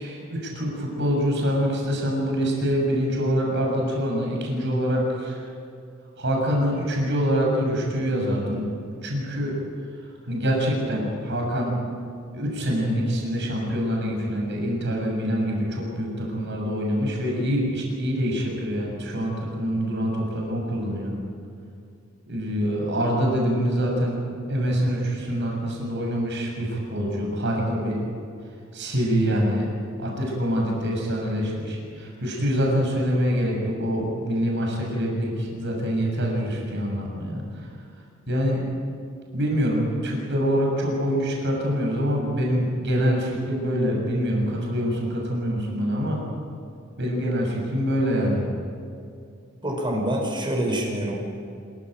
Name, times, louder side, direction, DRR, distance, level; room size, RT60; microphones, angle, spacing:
voice 1, 0.0-5.5 6.2-8.7 9.0-9.6 10.2-11.8 12.3-21.2 22.3-24.2 24.5-28.0 28.7-29.7 30.0-37.7 38.3-38.6 39.3-46.2 47.0-48.5, equal, 60° right, -1 dB, 6.9 m, -25 dB
voice 2, 49.6-51.1, right 1 dB, 25° right, 1 dB, 5.6 m, -26 dB
26.5 x 15.5 x 9.3 m, 2.4 s
head